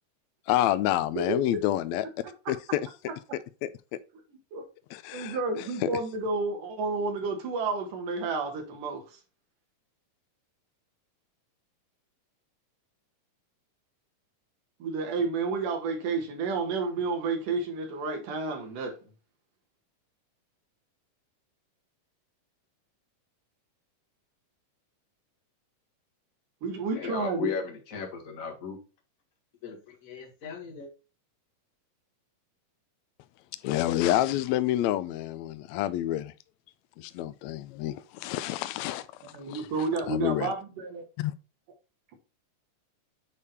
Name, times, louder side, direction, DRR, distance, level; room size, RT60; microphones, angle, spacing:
voice 1, 0.5-2.1 2.5-2.8 3.6-3.7 4.9-5.9 33.6-36.3 37.0-39.1 39.5-39.7 40.1-40.5 41.2-41.3, left 13 dB, 85° left, 1.6 m, -28 dB
voice 2, 5.1-9.0 14.8-18.9 26.6-27.5 39.3-41.0, right 4 dB, 75° right, 3.2 m, -30 dB
voice 3, 26.9-28.8 29.6-30.9, left 6 dB, 35° left, 1.4 m, -36 dB
8.3 x 3.6 x 4.2 m
omnidirectional pair, 3.8 m